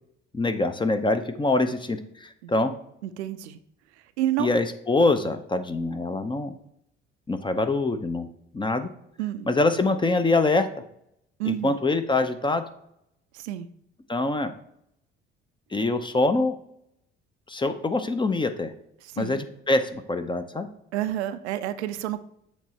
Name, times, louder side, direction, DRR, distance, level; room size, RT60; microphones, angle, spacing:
voice 1, 0.3-2.7 4.4-6.5 7.3-8.3 8.5-8.9 9.4-10.7 11.4-12.6 14.1-14.5 15.7-16.6 17.5-18.7 19.2-20.7, left 2 dB, 15° left, 9 dB, 0.6 m, -24 dB
voice 2, 3.0-3.6 4.2-4.5 9.2-9.5 11.4-11.8 13.3-13.7 19.1-19.4 20.9-22.2, right 13 dB, 75° right, 11 dB, 0.5 m, -29 dB
7.3 x 3.0 x 4.3 m, 0.74 s
figure-of-eight pair, 50°, 34 cm